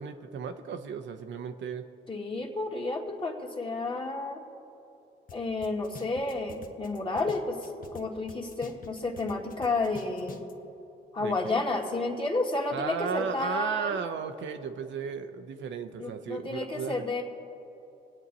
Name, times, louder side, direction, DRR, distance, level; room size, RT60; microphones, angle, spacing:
voice 1, 0.0-1.9 11.2-11.6 12.7-17.0, right 6 dB, 70° right, 7 dB, 0.9 m, -35 dB
voice 2, 2.1-4.4 5.3-10.4 11.1-14.0 16.0-17.2, left 3 dB, 25° left, 0 dB, 2.1 m, -31 dB
sound 1, 5.3-5.4 5.6-8.0 8.3-10.5, left 5 dB, 45° left, 1.2 m, -46 dB
23.5 x 8.7 x 4.1 m, 2.8 s
cardioid pair, 90°, 20 cm